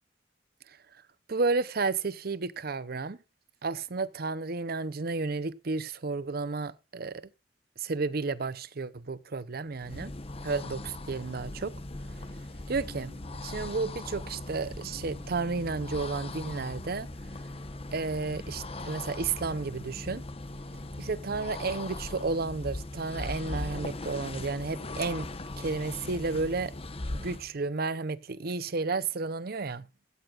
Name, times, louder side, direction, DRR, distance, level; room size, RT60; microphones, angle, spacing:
voice 1, 1.3-3.2 3.6-7.2 7.8-10.1 10.4-11.7 12.7-13.1 13.4-17.1 17.9-20.2 21.0-25.3 25.6-26.7 27.1-29.9, right 4 dB, 60° right, 0.7 m, -32 dB
sound 1, 9.7-27.5, left 2 dB, 35° left, 1.0 m, -39 dB
sound 2, 12.2-18.3 19.3-23.1, left 1 dB, 25° right, 2.5 m, -57 dB
16.5 x 13.5 x 2.5 m
head